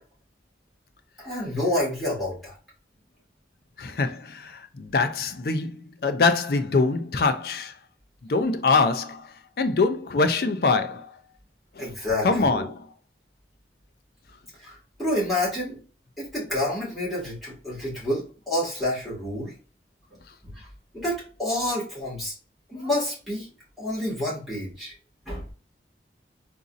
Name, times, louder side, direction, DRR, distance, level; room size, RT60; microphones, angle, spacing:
voice 1, 1.2-2.5 11.8-12.7 14.6-15.8 16.2-19.5 20.4-20.7 20.9-22.3 22.7-23.5 23.8-24.9 25.3-25.5, left 1 dB, ahead, 1.8 m, -28 dB
voice 2, 3.8-7.7 8.3-11.1 11.8-11.9 12.2-12.9, left 3 dB, 55° left, 0.4 m, -24 dB
3.9 x 2.6 x 2.4 m
head